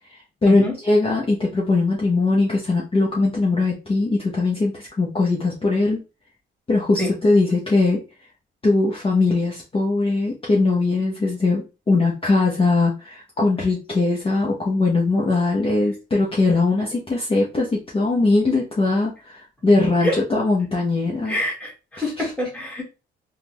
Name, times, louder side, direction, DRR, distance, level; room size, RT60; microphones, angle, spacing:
voice 1, 0.1-6.0 6.7-8.0 8.6-21.4 22.2-22.3, left 3 dB, 30° left, -3 dB, 0.8 m, -20 dB
voice 2, 21.2-22.8, left 1 dB, 5° left, -1 dB, 1.5 m, -25 dB
3.6 x 2.3 x 3.0 m, 0.30 s
cardioid pair, 90°, 20 cm